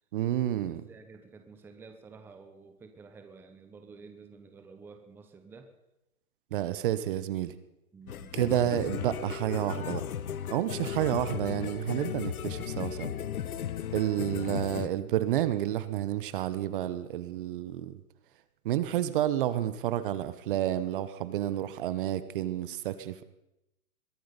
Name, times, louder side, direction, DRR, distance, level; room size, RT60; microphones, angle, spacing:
voice 1, 0.1-0.8 6.5-7.5 8.3-10.0 10.5-13.1 13.9-17.9 18.6-23.2, right 12 dB, 35° right, 14 dB, 0.9 m, -30 dB
voice 2, 0.9-5.7 7.9-8.4, right 4 dB, 5° right, 6 dB, 0.8 m, -51 dB
sound 1, 8.1-14.9, left 9 dB, 75° left, 1.1 m, -36 dB
22.0 x 11.5 x 5.2 m, 0.88 s
hypercardioid pair, 140°, 44 cm